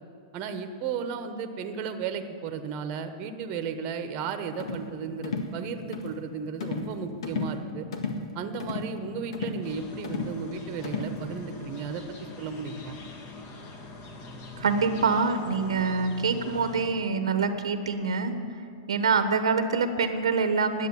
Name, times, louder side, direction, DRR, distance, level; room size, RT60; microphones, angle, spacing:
voice 1, 0.3-7.9 8.3-12.0 12.4-13.0, right 5 dB, 40° right, 8 dB, 1.0 m, -34 dB
sound 1, 4.6-4.9 5.2-5.5 5.9-6.2 6.6-6.9 7.2-7.6 7.9-8.2 8.6-8.9 9.3-9.7 10.0-10.4 10.8-11.2, left 4 dB, 75° left, 1.8 m, -33 dB
sound 2, 9.6-16.9, left 3 dB, 40° left, 2.0 m, -43 dB
voice 2, 14.6-18.3 18.9-20.9, right 5 dB, 90° right, 9 dB, 1.1 m, -25 dB
10.5 x 8.2 x 9.9 m, 2.5 s
hypercardioid pair, 125°, 3 cm